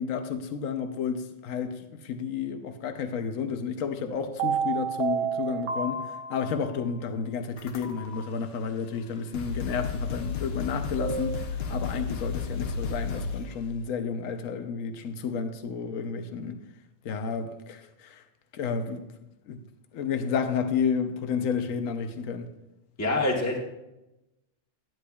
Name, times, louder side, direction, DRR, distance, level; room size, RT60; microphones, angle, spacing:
voice 1, 0.0-6.0 6.3-16.6 17.0-18.2 18.5-19.0 19.5-19.6 19.9-22.5, left 6 dB, 90° left, 7 dB, 1.1 m, -31 dB
sound 1, 4.1-6.8 11.0-11.5, right 6 dB, 70° right, 1.1 m, -30 dB
sound 2, 7.6-8.2 9.0-9.1 9.3-13.5, left 5 dB, 55° left, 1.0 m, -33 dB
voice 2, 23.0-23.6, left 2 dB, 15° left, -1 dB, 1.0 m, -25 dB
10.5 x 9.9 x 2.3 m, 0.94 s
omnidirectional pair, 1.3 m